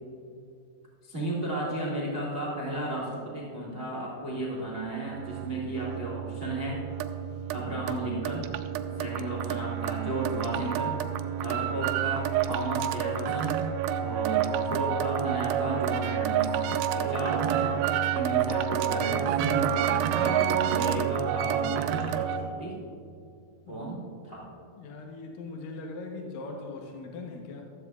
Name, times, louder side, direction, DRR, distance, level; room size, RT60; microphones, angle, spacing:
voice 1, 1.0-6.8 7.5-8.5 9.0-10.9 11.4-13.6 14.0-16.6 16.9-17.8 18.1-19.6 20.1-22.3 22.6-22.8 23.7-24.5, right 1 dB, 60° right, -5 dB, 0.6 m, -34 dB
sound 1, 5.1-22.5, right 9 dB, 85° right, 2.5 m, -29 dB
voice 2, 24.7-27.7, left 3 dB, 75° left, 1 dB, 2.0 m, -41 dB
15.0 x 13.0 x 2.3 m, 2.4 s
omnidirectional pair, 5.2 m